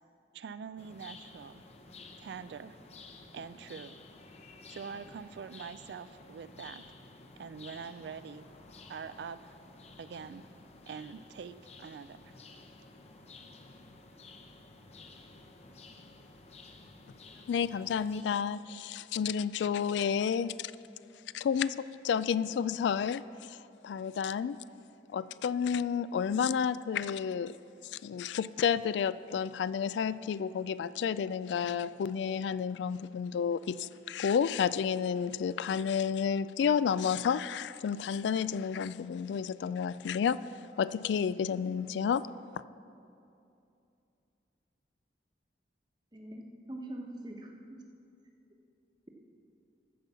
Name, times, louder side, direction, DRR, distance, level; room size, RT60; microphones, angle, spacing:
voice 1, 0.3-1.6 2.2-2.8 3.3-4.0 4.7-6.8 7.4-8.5 8.9-9.6 10.0-10.5 10.9-12.4, right 6 dB, 70° right, 14 dB, 0.3 m, -44 dB
sound 1, 0.8-18.2, left 3 dB, 35° left, 0.7 m, -53 dB
voice 2, 17.5-20.7 21.3-23.2 23.8-24.6 25.1-27.5 27.9-40.4 40.8-42.2, left 7 dB, 85° left, 16 dB, 0.3 m, -31 dB
voice 3, 46.1-47.8, right 1 dB, 25° right, 1 dB, 1.0 m, -43 dB
14.5 x 5.4 x 6.8 m, 2.7 s
head